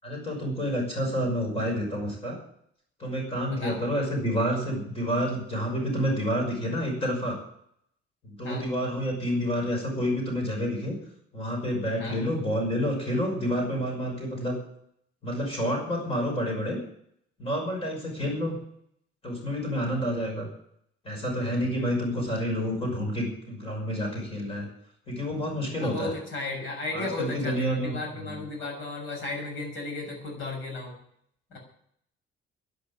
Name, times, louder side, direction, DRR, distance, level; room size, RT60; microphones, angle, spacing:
voice 1, 0.0-2.4 3.0-7.4 8.2-11.0 11.3-14.6 15.2-16.8 17.4-18.6 19.2-20.5 21.0-24.7 25.1-26.1 26.9-27.9 28.2-28.3, equal, 25° left, 1 dB, 5.9 m, -29 dB
voice 2, 3.5-3.8 8.4-8.7 12.0-12.2 25.8-31.0 31.5-31.6, left 2 dB, 70° left, 2 dB, 6.4 m, -34 dB
12.0 x 11.0 x 8.8 m, 0.70 s
cardioid pair, 175°, 21 cm